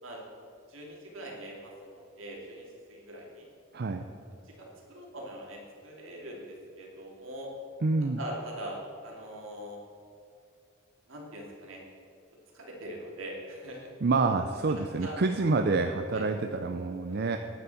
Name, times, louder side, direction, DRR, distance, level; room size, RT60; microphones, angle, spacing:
voice 1, 0.7-3.5 4.4-7.5 8.0-9.8 11.1-11.8 12.5-13.9 14.7-15.2 16.1-16.3 17.1-17.4, right 1 dB, 75° right, -2 dB, 2.8 m, -42 dB
voice 2, 7.8-8.2 14.0-17.4, right 3 dB, 50° right, 6 dB, 0.5 m, -27 dB
10.5 x 7.0 x 7.7 m, 2.5 s
head